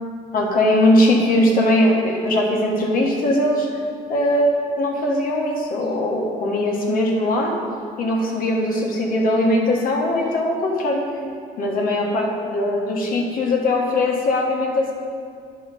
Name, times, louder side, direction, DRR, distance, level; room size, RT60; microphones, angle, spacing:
voice 1, 0.3-3.7 4.1-7.6 8.0-11.0 11.6-14.9, left 1 dB, 60° left, -1 dB, 1.5 m, -20 dB
9.2 x 5.3 x 6.8 m, 2.2 s
cardioid pair, 110°, 17 cm